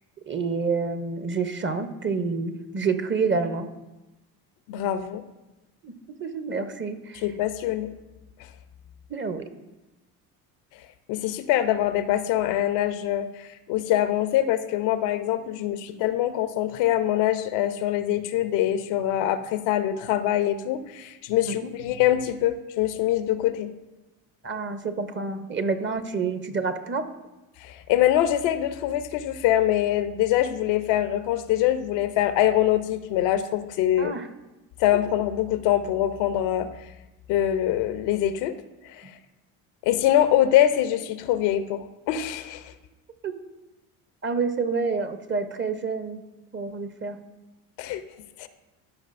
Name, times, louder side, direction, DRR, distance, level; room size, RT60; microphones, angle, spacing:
voice 1, 0.3-3.7 5.8-5.9 6.2-7.2 9.1-9.5 21.5-21.7 24.4-27.1 34.0-34.3 43.2-43.3 44.2-46.2 46.5-47.2, right 4 dB, 25° right, 9 dB, 0.7 m, -28 dB
voice 2, 4.7-5.2 7.2-7.9 11.1-23.7 27.6-34.1 34.8-36.7 37.3-38.5 38.8-39.1 39.8-42.7 47.8-48.0 48.4-48.5, left 12 dB, 70° left, 11 dB, 0.7 m, -24 dB
13.0 x 5.1 x 2.5 m, 1.0 s
supercardioid pair, 75°, 43 cm